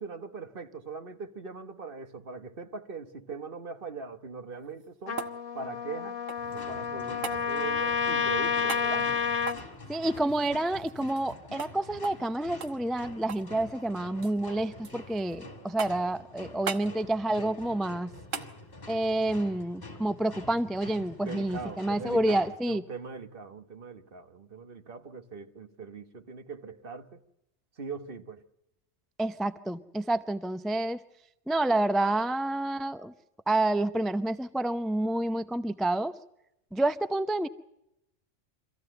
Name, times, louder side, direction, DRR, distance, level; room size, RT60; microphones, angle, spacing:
voice 1, 0.0-5.2 5.5-6.2 6.5-9.1 21.0-27.2 27.8-28.4, right 4 dB, 45° right, 1.5 m, -41 dB
sound 1, 4.6-6.6 7.2-7.4 8.7-8.9 9.4-11.3 11.6-11.7 12.0-12.3 12.6-13.5 13.8-14.4 14.8-15.4 15.8-16.2 16.7-16.9 18.3-18.5 20.9-21.0, right 6 dB, 80° right, 1.5 m, -39 dB
Trumpet, 5.1-9.6, left 6 dB, 80° left, 1.5 m, -30 dB
sound 2, 6.4-22.6, left 2 dB, 35° left, 2.4 m, -47 dB
voice 2, 9.9-18.1 18.9-22.8 29.2-31.0 31.5-33.1 33.5-36.1 36.7-37.5, right 1 dB, ahead, 0.4 m, -29 dB
25.0 x 15.0 x 7.8 m
omnidirectional pair, 1.3 m